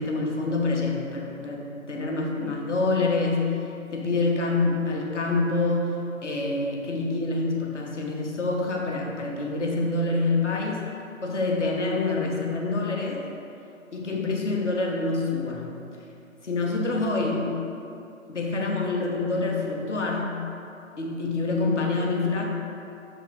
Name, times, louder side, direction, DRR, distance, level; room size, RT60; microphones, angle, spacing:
voice 1, 0.0-3.6 3.9-10.9 11.2-13.3 13.9-15.7 16.4-17.5 18.3-20.4 21.0-22.5, left 3 dB, 55° left, -1 dB, 1.1 m, -26 dB
6.1 x 3.7 x 4.7 m, 2.7 s
figure-of-eight pair, 150°, 42 cm